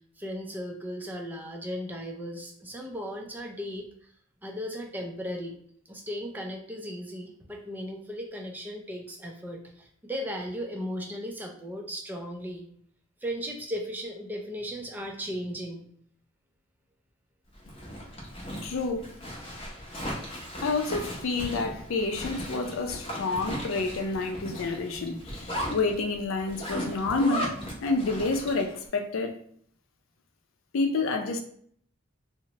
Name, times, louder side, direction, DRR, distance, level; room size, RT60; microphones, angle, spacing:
voice 1, 0.2-3.9 4.4-5.6 5.9-9.6 10.0-12.7 13.2-15.8, equal, 10° right, 0.4 m, -36 dB
Zipper (clothing), 17.5-28.8, equal, 30° left, 0.6 m, -37 dB
voice 2, 18.6-19.1 20.6-27.5 27.8-29.4 30.7-31.4, left 3 dB, 85° left, 0.4 m, -29 dB
2.7 x 2.1 x 2.8 m
head